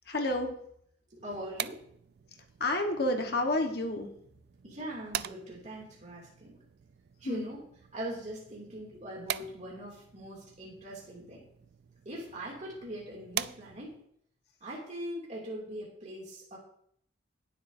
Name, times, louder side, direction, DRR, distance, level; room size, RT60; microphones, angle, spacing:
voice 1, 0.0-0.6 2.6-4.1 7.2-7.5, left 1 dB, 60° left, 3 dB, 1.3 m, -30 dB
voice 2, 1.1-1.8 4.6-6.6 7.2-7.6 7.9-11.4 12.0-14.0 14.6-16.6, right 1 dB, 40° right, -3 dB, 2.5 m, -41 dB
sound 1, 1.2-14.1, right 10 dB, 60° right, 0.4 m, -44 dB
19.0 x 7.9 x 2.7 m, 0.67 s
head